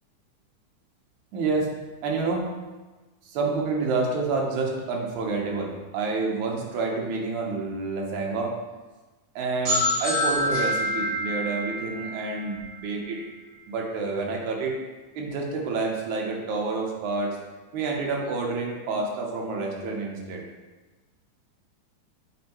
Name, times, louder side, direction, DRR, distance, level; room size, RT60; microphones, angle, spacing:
voice 1, 1.3-1.7 2.0-2.5 3.2-8.5 9.4-13.2 13.7-14.8 15.2-17.4 17.7-20.4, right 3 dB, 70° right, -1 dB, 2.2 m, -28 dB
sound 1, 9.6-13.3, equal, 40° right, 2.0 m, -27 dB
7.1 x 5.3 x 3.0 m, 1.2 s
omnidirectional pair, 3.7 m